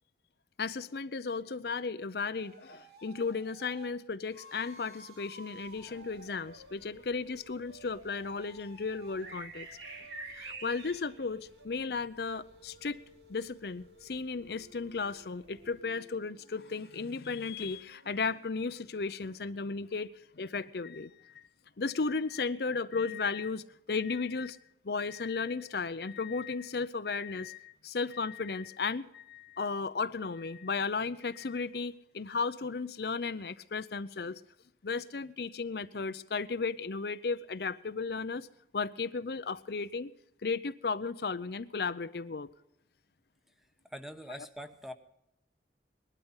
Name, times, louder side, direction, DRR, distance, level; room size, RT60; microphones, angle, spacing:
voice 1, 0.6-9.7 10.3-13.0 13.3-20.1 20.4-21.4 21.8-24.6 24.8-34.4 34.8-38.5 38.7-40.1 40.4-42.5, left 4 dB, 60° left, 0.6 m, -35 dB
sound 1, 2.3-3.9 4.3-11.7 12.1-18.4, equal, 65° right, 3.0 m, -56 dB
sound 2, 5.6-15.8, right 3 dB, 90° right, 2.9 m, -52 dB
voice 2, 43.9-44.9, equal, ahead, 1.0 m, -43 dB
20.0 x 12.5 x 5.5 m
head